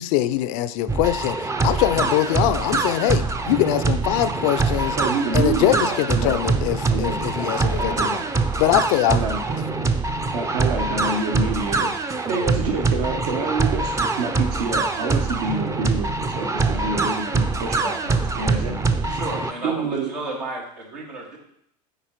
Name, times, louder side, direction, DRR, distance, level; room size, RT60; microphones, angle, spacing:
voice 1, 0.0-1.4 1.6-5.0 5.3-8.2 8.6-9.2, left 13 dB, 50° left, 0.4 m, -22 dB
sound 1, 0.9-19.5, right 3 dB, 15° right, 0.5 m, -24 dB
voice 2, 5.0-6.4 6.9-7.5 7.7-8.2 9.1-9.6 10.3-18.9 19.6-20.1, right 4 dB, 65° right, 0.9 m, -28 dB
voice 3, 19.0-21.4, right 2 dB, 80° right, 2.2 m, -32 dB
10.0 x 3.9 x 3.0 m
hypercardioid pair, 80°, 21 cm